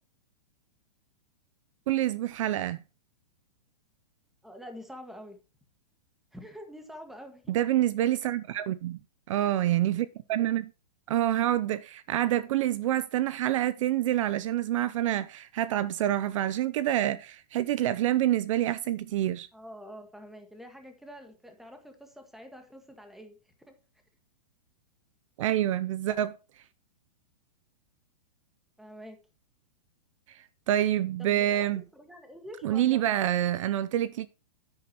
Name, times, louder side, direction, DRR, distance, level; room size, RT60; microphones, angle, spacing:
voice 1, 1.9-2.8 7.5-9.0 9.3-10.7 11.1-19.5 25.4-26.4 30.3-31.8 32.6-34.3, right 12 dB, 50° right, 0.6 m, -27 dB
voice 2, 4.4-5.4 6.3-7.5 19.5-23.4 23.7-23.8 28.8-29.2 31.2-31.7 31.9-33.3, equal, ahead, 1.8 m, -46 dB
10.0 x 9.7 x 3.0 m
hypercardioid pair, 150°, 21 cm